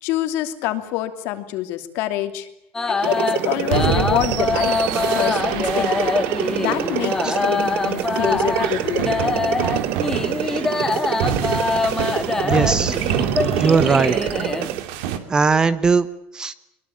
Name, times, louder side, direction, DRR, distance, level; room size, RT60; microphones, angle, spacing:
voice 1, 0.0-2.5 2.9-4.8 5.1-6.2 6.6-9.4, left 14 dB, 65° left, 8 dB, 2.9 m, -26 dB
sound 1, 2.7-14.7, left 3 dB, 10° left, 1.8 m, -24 dB
sound 2, 3.0-14.9, right 14 dB, 55° right, 1.2 m, -27 dB
sound 3, 3.7-15.2, right 8 dB, 85° right, 2.9 m, -28 dB
voice 2, 12.4-13.0 13.6-14.2 15.3-16.1 16.3-16.5, right 5 dB, 15° right, 15 dB, 1.0 m, -18 dB
23.5 x 22.5 x 8.7 m, 0.81 s
cardioid pair, 160°, 4 cm